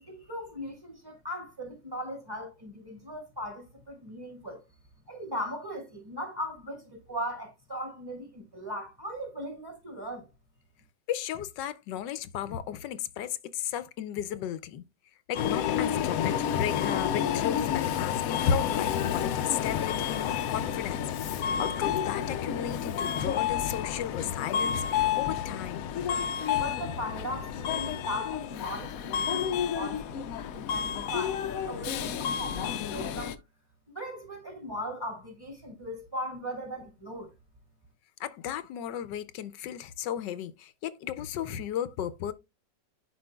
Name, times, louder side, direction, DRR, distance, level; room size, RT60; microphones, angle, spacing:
voice 1, 0.0-4.6 5.1-10.3 26.6-33.3 33.9-37.3, equal, 15° right, 2.7 m, -38 dB
voice 2, 11.1-14.8 15.3-25.9 38.2-42.3, left 9 dB, 85° left, 1.3 m, -34 dB
Subway metro underground, 15.3-33.4, left 9 dB, 65° left, 0.9 m, -30 dB
10.0 x 5.1 x 2.2 m
omnidirectional pair, 1.9 m